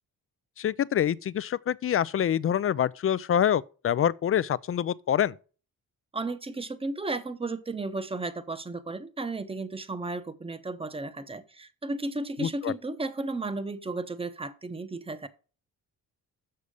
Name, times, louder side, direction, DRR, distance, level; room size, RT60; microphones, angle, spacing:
voice 1, 0.6-5.4 12.4-12.7, left 9 dB, 40° left, 0.4 m, -26 dB
voice 2, 6.1-15.3, right 2 dB, 15° right, 0.8 m, -34 dB
6.8 x 6.7 x 4.9 m
cardioid pair, 95°, 36 cm